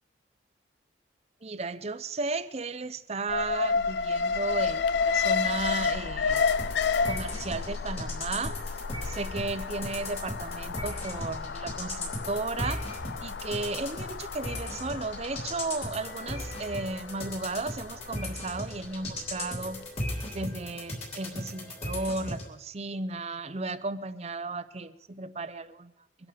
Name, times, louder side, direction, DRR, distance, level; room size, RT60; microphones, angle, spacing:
voice 1, 1.4-6.4 7.1-8.8 9.0-12.8 13.2-19.8 20.3-25.9, right 3 dB, 35° right, 13 dB, 0.6 m, -34 dB
Alarm, 3.3-19.4 19.7-19.8, left 5 dB, 60° left, 0.4 m, -31 dB
sound 1, 6.3-22.5, left 1 dB, 30° left, 3.6 m, -38 dB
23.0 x 11.0 x 5.0 m, 0.99 s
head